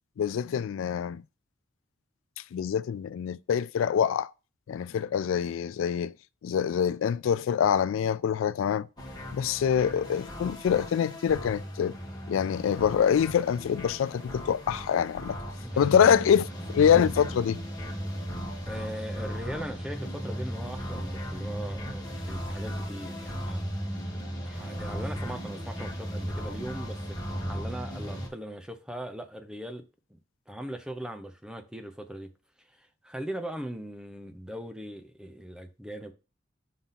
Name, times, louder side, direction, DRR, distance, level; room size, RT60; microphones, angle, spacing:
voice 1, 0.2-1.2 2.5-4.3 4.7-6.1 6.4-8.9 9.3-12.0 12.3-15.4 15.8-16.5 16.7-17.6, left 8 dB, 85° left, 0.3 m, -25 dB
sound 1, 9.0-28.3, equal, 20° left, 1.6 m, -36 dB
voice 2, 15.6-16.3 18.7-23.6 24.4-29.8 30.1-30.2 30.5-32.3 32.8-36.1, right 1 dB, 5° right, 0.8 m, -40 dB
5.7 x 3.5 x 5.7 m
head